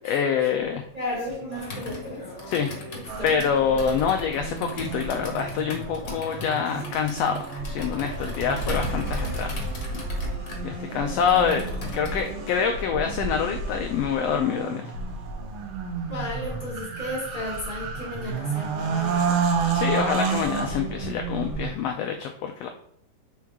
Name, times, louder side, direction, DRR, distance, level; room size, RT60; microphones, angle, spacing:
voice 1, 0.0-0.8 2.5-2.7 3.2-9.5 10.6-11.7 11.9-14.9 19.7-22.7, left 7 dB, 80° left, 4 dB, 1.4 m, -26 dB
sound 1, 0.6-14.1, right 1 dB, 35° right, 1.9 m, -43 dB
voice 2, 0.9-2.2 3.2-3.3 16.1-19.3, left 1 dB, 20° right, -5 dB, 1.3 m, -34 dB
Computer keyboard, 1.6-12.3, left 3 dB, 40° left, 1.4 m, -39 dB
sound 2, 3.1-21.7, right 4 dB, 70° right, 1.6 m, -31 dB
6.2 x 4.5 x 3.5 m, 0.70 s
omnidirectional pair, 3.4 m